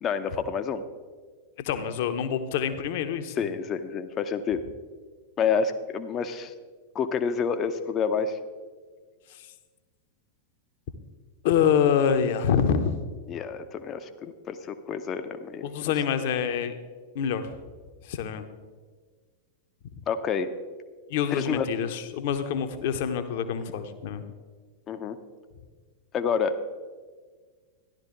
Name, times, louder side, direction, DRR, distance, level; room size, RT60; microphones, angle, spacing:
voice 1, 0.0-0.8 3.4-4.6 5.4-6.5 6.9-8.4 13.3-15.9 20.1-20.5 21.3-21.7 24.9-25.2 26.1-26.6, left 6 dB, 30° left, 9 dB, 0.7 m, -28 dB
voice 2, 1.6-3.4 11.4-13.0 15.6-16.8 17.1-17.5 18.1-18.4 21.1-24.2, left 7 dB, 50° left, 9 dB, 0.9 m, -26 dB
13.5 x 11.5 x 3.9 m, 1.5 s
figure-of-eight pair, 90°, 0 cm